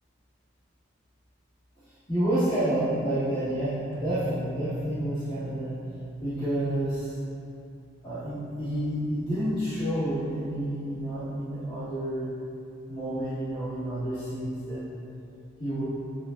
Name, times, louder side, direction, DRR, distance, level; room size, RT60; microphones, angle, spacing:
voice 1, 2.1-5.7 6.2-7.1 8.0-12.3 12.9-14.8 15.6-15.8, right 1 dB, 25° left, -14 dB, 1.7 m, -29 dB
sound 1, 3.9-8.8, right 1 dB, 60° left, 1.5 m, -41 dB
8.5 x 7.7 x 2.8 m, 2.6 s
head